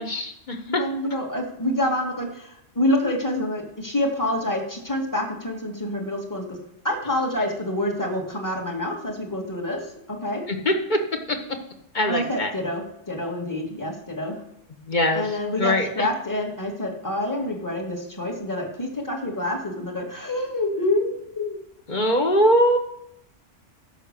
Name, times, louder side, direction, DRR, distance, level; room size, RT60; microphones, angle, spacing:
voice 1, 0.0-0.6 10.5-11.0 11.9-12.5 14.9-15.2 15.6-15.9 21.9-22.8, equal, 40° left, 4 dB, 1.4 m, -21 dB
voice 2, 0.7-6.6 6.8-10.4 12.1-14.4 15.1-21.6, left 1 dB, 15° left, 1 dB, 2.0 m, -27 dB
11.0 x 6.0 x 6.8 m, 0.75 s
omnidirectional pair, 1.3 m